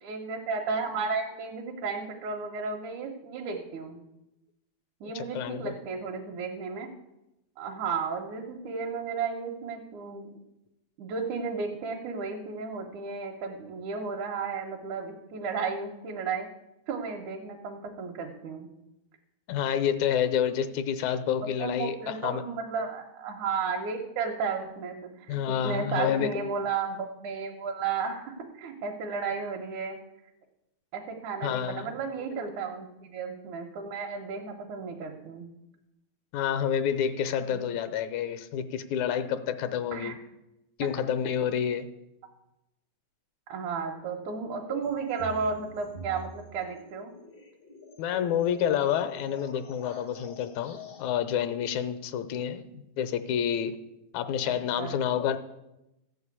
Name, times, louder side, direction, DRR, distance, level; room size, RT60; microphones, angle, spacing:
voice 1, 0.0-4.0 5.0-6.9 7.6-10.3 11.0-16.5 16.9-18.7 21.6-30.0 30.9-35.5 37.5-37.6 39.9-40.1 43.5-47.1 54.4-55.0, right 5 dB, 80° right, 0 dB, 2.5 m, -33 dB
voice 2, 5.2-5.7 19.5-22.5 25.3-26.3 31.4-31.9 32.3-32.5 36.3-40.2 40.8-41.9 44.6-44.8 48.0-53.8 54.1-55.4, left 8 dB, 85° left, 11 dB, 2.2 m, -29 dB
sound 1, 44.8-51.1, left 1 dB, 55° left, 0.6 m, -46 dB
14.5 x 5.6 x 8.3 m, 0.94 s
omnidirectional pair, 3.4 m